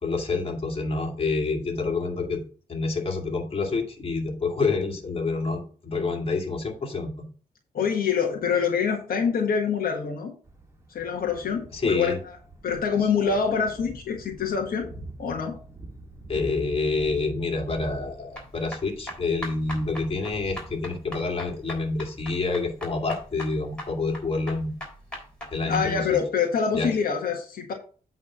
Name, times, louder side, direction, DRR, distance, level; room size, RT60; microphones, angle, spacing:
voice 1, 0.0-2.4 2.7-7.3 11.7-12.2 16.3-24.7 25.5-26.2 26.7-26.9, left 3 dB, 40° left, 2 dB, 2.2 m, -28 dB
voice 2, 7.7-10.3 10.9-12.4 12.6-14.9 15.2-15.5 25.6-27.7, left 6 dB, 75° left, 1 dB, 1.4 m, -25 dB
Thunder, 10.4-23.8, right 2 dB, 20° right, 1.7 m, -46 dB
sound 1, 18.3-25.9, left 1 dB, 5° left, 3.3 m, -40 dB
8.8 x 3.6 x 6.1 m, 0.40 s
wide cardioid pair, 115°, 15 cm